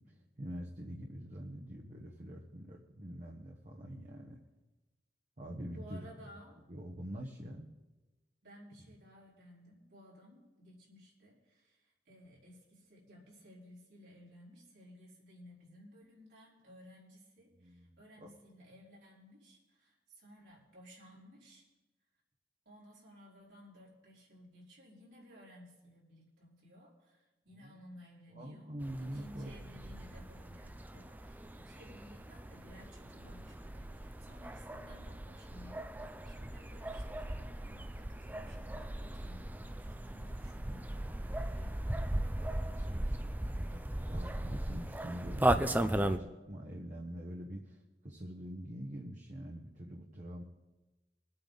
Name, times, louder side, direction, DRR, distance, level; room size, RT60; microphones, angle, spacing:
voice 1, 0.0-4.4 5.4-6.3 6.7-7.7 17.6-18.3 27.5-27.8 28.3-29.5 42.0-50.4, equal, 45° right, 0 dB, 1.1 m, -45 dB
voice 2, 5.7-6.6 8.4-21.6 22.6-28.7 29.0-42.1, equal, 80° right, -7 dB, 4.3 m, -57 dB
sound 1, 28.8-46.2, right 1 dB, 10° right, 0.4 m, -37 dB
21.5 x 8.7 x 4.0 m, 1.1 s
head